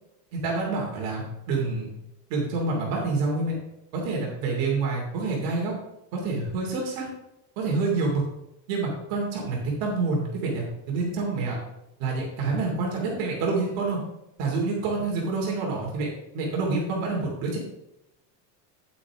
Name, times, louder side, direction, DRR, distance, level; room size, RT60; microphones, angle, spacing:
voice 1, 0.3-1.9 2.3-3.6 3.9-5.7 6.1-7.1 7.6-8.2 8.7-11.6 12.0-14.0 14.4-16.1 16.3-17.6, right 3 dB, 45° right, -2 dB, 2.8 m, -27 dB
9.4 x 8.5 x 3.6 m, 0.87 s
cardioid pair, 170°, 46 cm